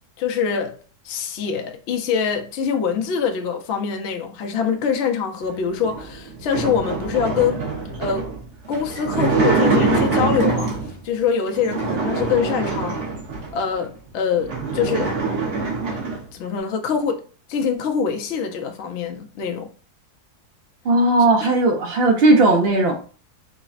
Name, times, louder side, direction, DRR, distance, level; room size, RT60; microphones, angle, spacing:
voice 1, 0.2-0.7 1.0-7.7 8.0-8.3 8.7-10.7 11.0-13.0 13.5-15.1 16.3-17.2 17.5-19.7 21.4-21.5, left 6 dB, 70° left, 0.6 m, -24 dB
sound 1, 5.8-11.0 11.5-13.6 14.1-14.2 14.4-16.2, right 4 dB, 50° right, 0.9 m, -24 dB
voice 2, 20.8-22.9, right 2 dB, 85° right, 0.5 m, -16 dB
4.8 x 2.0 x 2.4 m
omnidirectional pair, 1.7 m